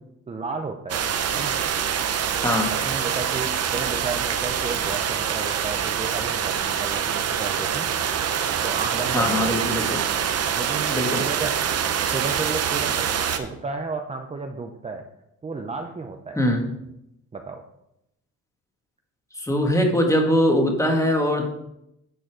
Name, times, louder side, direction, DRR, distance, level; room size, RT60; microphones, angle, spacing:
voice 1, 0.3-1.5 2.7-7.9 8.6-9.8 10.5-11.5 12.1-13.0 13.4-15.0 15.4-16.4 17.3-17.6, right 4 dB, 20° right, 4 dB, 0.6 m, -33 dB
sound 1, 0.9-13.4, right 8 dB, 55° right, 0.8 m, -25 dB
voice 2, 2.4-2.7 9.1-10.0 10.9-11.2 16.3-16.7 19.3-21.5, equal, 10° left, 2 dB, 1.7 m, -21 dB
9.1 x 4.2 x 4.8 m, 0.83 s
cardioid pair, 90°, 30 cm